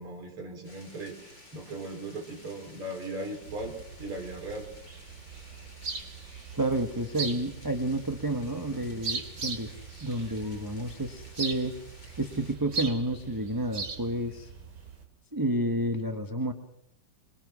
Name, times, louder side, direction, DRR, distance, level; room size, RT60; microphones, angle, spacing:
voice 1, 0.0-4.7 8.5-8.9, right 2 dB, 75° right, 3 dB, 4.8 m, -38 dB
sound 1, 0.6-12.6, left 1 dB, 55° left, 8.7 m, -53 dB
sound 2, 3.4-15.0, right 4 dB, 50° right, 3.3 m, -40 dB
voice 2, 6.5-9.7 10.0-11.7 12.2-14.5 15.3-16.5, right 1 dB, 10° right, 6 dB, 1.0 m, -30 dB
25.5 x 22.5 x 6.2 m, 0.73 s
omnidirectional pair, 2.4 m